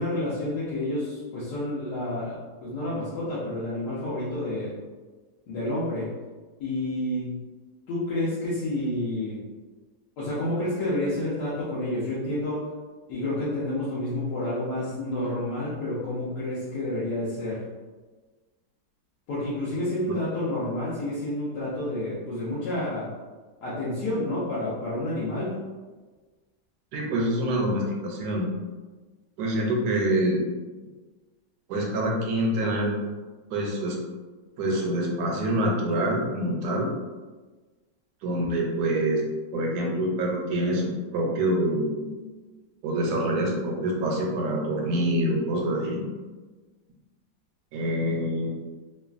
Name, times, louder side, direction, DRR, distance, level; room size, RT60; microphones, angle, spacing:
voice 1, 0.0-4.8 5.5-6.1 6.6-7.3 7.9-9.4 10.2-12.7 13.1-17.6 19.3-23.1 23.6-25.6, left 1 dB, 70° left, -9 dB, 1.2 m, -29 dB
voice 2, 26.9-28.5 29.4-30.4 31.7-32.9 33.5-34.0 34.6-36.9 38.2-39.2 39.5-42.1 42.8-46.0 47.7-48.6, right 1 dB, 75° right, -1 dB, 1.1 m, -26 dB
3.1 x 2.3 x 2.4 m, 1.3 s
omnidirectional pair, 1.9 m